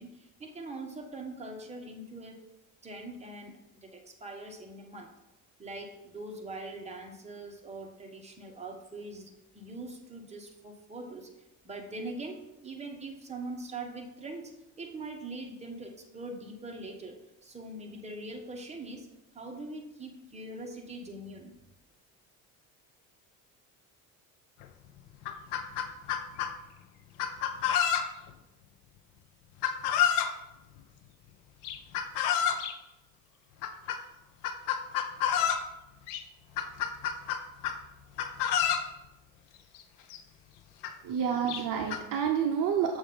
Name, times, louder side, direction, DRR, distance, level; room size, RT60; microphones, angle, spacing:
voice 1, 0.0-2.4 2.8-5.1 5.6-11.3 11.6-19.1 19.3-21.6, right 2 dB, 15° right, 2 dB, 1.1 m, -42 dB
Chicken rooster, 24.6-24.7 25.1-26.5 27.2-28.3 29.6-30.3 31.6-32.7 33.6-34.0 34.4-35.7 36.1-36.2 36.6-37.8 38.2-38.9 39.8-39.9 40.1-40.2 40.8-40.9 41.5-42.0, left 9 dB, 70° left, 0.7 m, -29 dB
voice 2, 41.0-43.0, right 8 dB, 50° right, 4 dB, 0.7 m, -29 dB
6.9 x 2.7 x 5.4 m, 0.93 s
hypercardioid pair, 65°, 43 cm